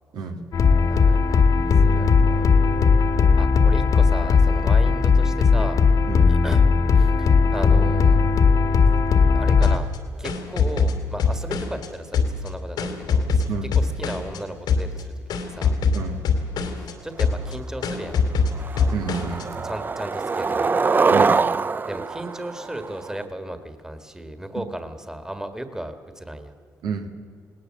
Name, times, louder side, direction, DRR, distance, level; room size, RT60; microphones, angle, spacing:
voice 1, 0.1-0.5 6.1-6.3 13.5-13.7 15.9-16.2 16.8-16.9 18.9-19.5 21.1-21.4 24.6-24.7 26.8-27.1, right 5 dB, 80° right, 4 dB, 2.0 m, -30 dB
sound 1, 0.5-9.8, left 5 dB, 60° left, 1.7 m, -17 dB
voice 2, 0.9-2.5 3.4-5.8 6.3-6.6 7.0-8.2 9.3-13.4 13.8-15.1 15.4-15.7 17.0-18.2 19.6-20.7 21.9-26.5, right 1 dB, 10° right, 8 dB, 1.7 m, -35 dB
sound 2, 9.6-11.9 12.1-14.4 14.7-15.0 15.3-16.9 17.2-17.5 17.8-19.4, left 5 dB, 85° left, 2.7 m, -23 dB
Skateboard, 17.5-17.6 18.0-18.3 18.6-23.2, right 4 dB, 30° right, 0.5 m, -23 dB
20.0 x 18.5 x 7.5 m, 2.2 s
cardioid pair, 95°, 7 cm